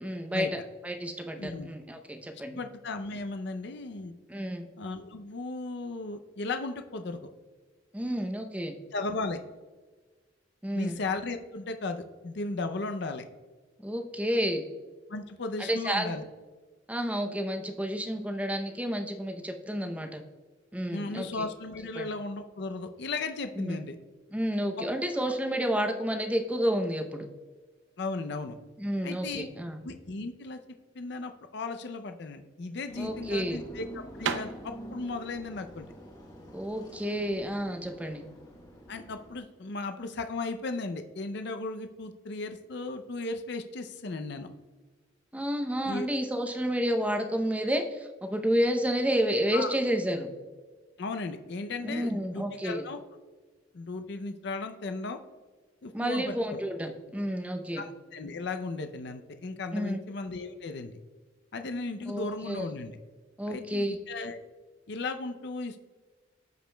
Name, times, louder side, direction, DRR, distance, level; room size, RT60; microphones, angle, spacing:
voice 1, 0.0-2.6 4.3-4.7 7.9-8.8 10.6-11.0 13.8-14.6 15.7-16.2 16.9-20.2 20.7-21.4 22.0-22.1 23.6-23.8 24.3-27.3 28.8-29.8 33.0-33.6 36.5-38.3 45.3-50.3 51.8-52.8 55.9-57.8 59.7-60.0 62.1-62.7 63.4-64.0, equal, 10° right, 5 dB, 0.6 m, -30 dB
voice 2, 2.5-4.1 4.8-7.3 8.9-9.4 10.7-13.2 15.1-16.3 20.9-24.0 24.8-24.9 28.0-28.5 29.0-29.5 29.8-30.6 30.9-35.9 38.9-44.5 45.8-46.1 49.5-49.8 51.0-53.0 53.7-55.2 55.8-56.6 57.7-61.0 61.5-63.0 63.5-64.4 64.9-65.8, left 3 dB, 65° left, 7 dB, 0.5 m, -36 dB
sound 1, 32.4-38.0, right 6 dB, 80° right, 0.5 m, -39 dB
sound 2, 32.9-39.4, equal, 20° left, 1.1 m, -47 dB
14.0 x 5.0 x 2.2 m, 1.3 s
head